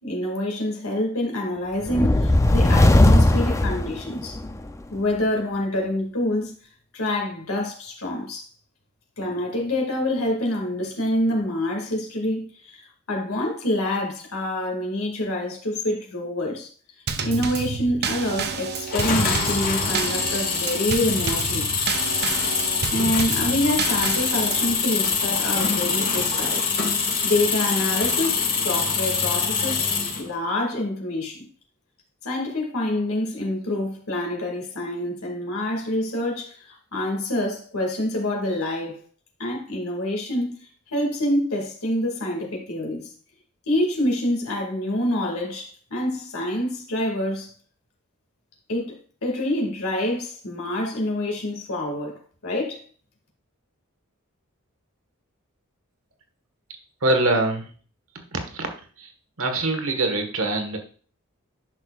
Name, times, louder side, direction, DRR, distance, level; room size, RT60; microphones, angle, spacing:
voice 1, 0.0-4.4 4.9-6.5 6.9-8.4 9.2-16.7 17.2-21.7 22.9-31.5 32.2-39.0 39.4-40.5 40.9-43.1 43.7-47.5 48.7-52.8, left 1 dB, 80° left, 2.1 m, -26 dB
sound 1, 1.8-4.6, left 1 dB, 15° left, 0.5 m, -17 dB
Drum kit / Snare drum / Bass drum, 17.1-24.8, right 5 dB, 50° right, 0.7 m, -30 dB
sound 2, 18.9-30.3, left 5 dB, 45° left, 2.0 m, -24 dB
voice 2, 57.0-57.7 58.3-58.7 59.0-59.1 59.4-60.8, right 2 dB, 65° right, 1.4 m, -23 dB
10.5 x 6.4 x 2.4 m
head